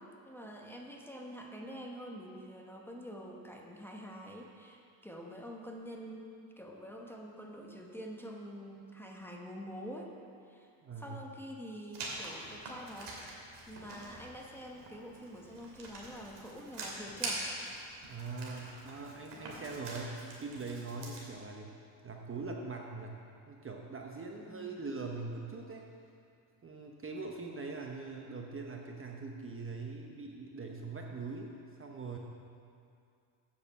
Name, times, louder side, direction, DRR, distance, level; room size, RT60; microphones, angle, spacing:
voice 1, 0.0-10.1 10.4-10.7 11.0-13.2 13.7-17.5 24.4-24.8, equal, 5° left, 0 dB, 1.1 m, -46 dB
voice 2, 10.8-11.2 18.1-21.7 22.0-23.2 23.5-25.9 26.6-31.5 31.8-32.2, right 3 dB, 25° right, 1 dB, 0.9 m, -42 dB
Writing, 11.9-21.2, right 2 dB, 60° right, 2.7 m, -44 dB
8.2 x 6.7 x 7.2 m, 2.4 s
cardioid pair, 105°, 47 cm